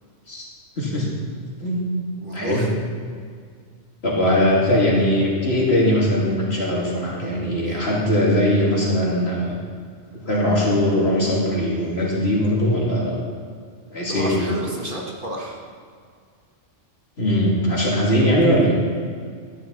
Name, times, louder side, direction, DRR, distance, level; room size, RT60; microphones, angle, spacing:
voice 1, 0.8-1.1 1.6-1.8 2.3-2.6 4.0-9.6 10.3-13.1 13.9-14.5 17.2-18.7, equal, 60° left, -5 dB, 3.0 m, -20 dB
voice 2, 2.2-2.7 7.7-7.8 14.1-15.6, right 1 dB, 45° right, -2 dB, 1.9 m, -30 dB
13.0 x 11.0 x 4.1 m, 2.1 s
omnidirectional pair, 1.2 m